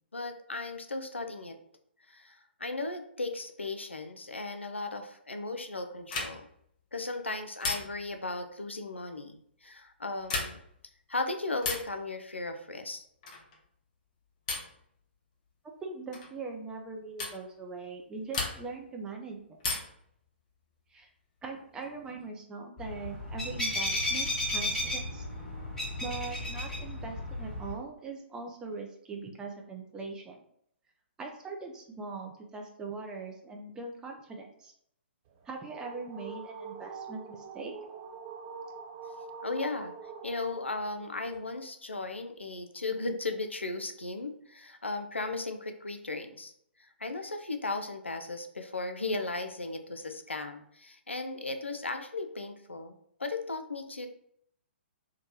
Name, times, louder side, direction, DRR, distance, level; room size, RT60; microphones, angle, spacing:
voice 1, 0.1-1.6 2.1-6.5 6.9-10.6 11.1-13.0 39.4-39.9 40.2-46.5 46.8-54.1, left 3 dB, 90° left, 7 dB, 0.4 m, -36 dB
sound 1, 6.1-6.6 7.6-8.2 10.2-10.8 11.6-12.0 13.2-13.6 14.5-14.8 16.1-16.3 17.2-17.4 18.3-18.9 19.6-20.1 21.6-22.2, left 3 dB, 40° left, 0.6 m, -35 dB
voice 2, 15.8-19.6 20.9-21.1 21.4-25.2 26.0-30.4 31.2-34.7 35.5-37.7, right 4 dB, 10° right, 1 dB, 0.4 m, -41 dB
sound 2, 22.8-27.7, left 1 dB, 5° left, 1.2 m, -33 dB
sound 3, 35.3-41.4, right 5 dB, 35° right, 0.9 m, -45 dB
2.8 x 2.1 x 2.9 m, 0.69 s
figure-of-eight pair, 125°, 6 cm